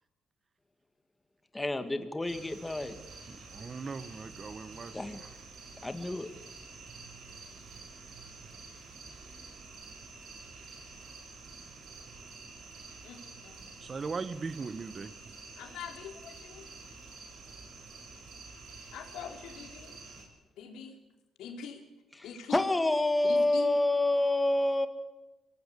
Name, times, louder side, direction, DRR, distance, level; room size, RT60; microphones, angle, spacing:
voice 1, 1.5-3.0 4.9-5.2 5.8-6.3 22.1-24.9, left 2 dB, 15° left, 2.1 m, -28 dB
sound 1, 2.3-20.2, right 4 dB, 70° right, 7.0 m, -49 dB
voice 2, 3.5-5.3 8.4-8.5 13.8-15.1, right 4 dB, 35° right, 1.1 m, -39 dB
voice 3, 13.0-13.7 15.6-16.7 18.9-20.0 20.6-20.9 21.4-21.8 22.2-22.6 23.2-23.7, left 7 dB, 85° left, 3.9 m, -43 dB
24.0 x 19.0 x 8.5 m
cardioid pair, 90°, 0 cm